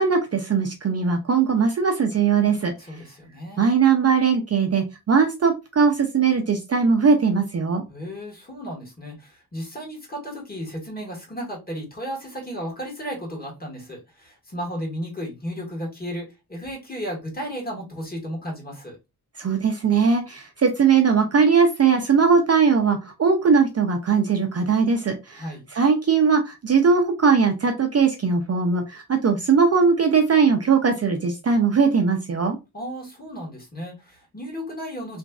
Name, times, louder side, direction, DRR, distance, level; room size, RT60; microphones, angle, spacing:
voice 1, 0.0-2.7 3.6-7.8 19.4-25.4 25.7-32.6, right 5 dB, 40° right, 4 dB, 0.5 m, -20 dB
voice 2, 2.8-3.6 7.9-19.0 25.4-25.6 32.7-35.2, equal, 25° left, -2 dB, 1.6 m, -34 dB
3.0 x 2.5 x 2.3 m, 0.25 s
wide cardioid pair, 90°, 39 cm